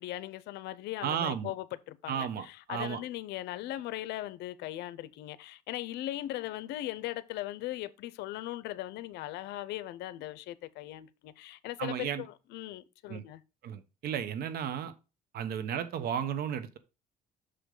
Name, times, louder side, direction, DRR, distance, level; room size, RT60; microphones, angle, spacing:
voice 1, 0.0-13.4, left 15 dB, 85° left, 0.6 m, -39 dB
voice 2, 1.0-1.5 2.1-3.0 11.8-12.2 13.1-13.2 13.6-14.9 15.3-16.8, right 8 dB, 65° right, 1.0 m, -34 dB
6.3 x 5.1 x 3.8 m
cardioid pair, 110°, 17 cm